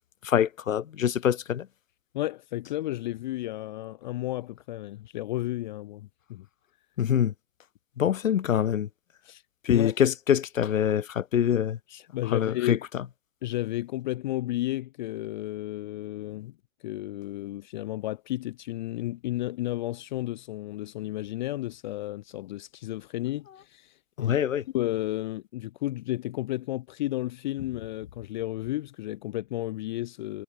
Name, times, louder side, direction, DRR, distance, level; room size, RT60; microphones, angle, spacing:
voice 1, 0.2-1.7 7.0-7.3 8.0-8.9 9.6-11.8 12.3-12.8 24.2-24.6, left 9 dB, 80° left, 0.5 m, -24 dB
voice 2, 2.1-6.5 8.0-8.1 9.2-9.4 9.7-10.0 11.9-12.9 13.4-16.5 16.8-24.4 24.7-30.4, left 16 dB, 35° left, 0.7 m, -33 dB
figure-of-eight pair, 110°, 39 cm